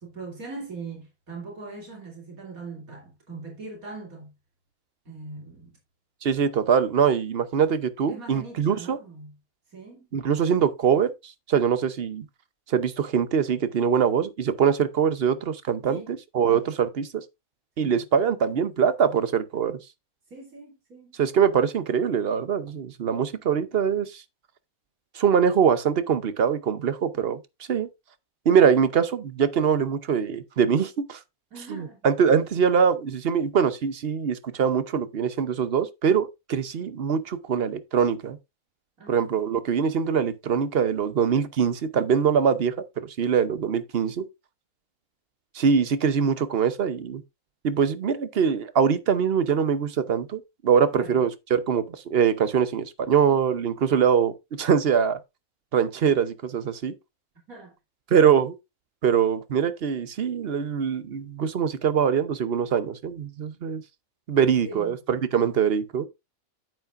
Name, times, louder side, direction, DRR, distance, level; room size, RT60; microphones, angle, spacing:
voice 1, 0.0-4.3 5.0-5.7 8.1-9.4 9.7-10.1 15.9-16.1 17.8-18.0 20.3-21.2 31.5-32.1 39.0-39.3 50.9-51.2 57.5-57.7 64.6-65.0, right 3 dB, 75° right, 3.3 m, -41 dB
voice 2, 6.2-9.0 10.1-12.2 12.7-16.0 16.3-17.1 17.8-19.8 21.2-24.2 25.1-27.4 27.7-27.9 28.5-31.2 31.7-38.4 39.1-44.2 45.5-47.2 47.6-55.2 55.7-56.9 58.1-58.5 59.0-63.8 64.3-66.1, right 7 dB, 50° right, 0.9 m, -23 dB
9.0 x 8.2 x 2.5 m
omnidirectional pair, 1.5 m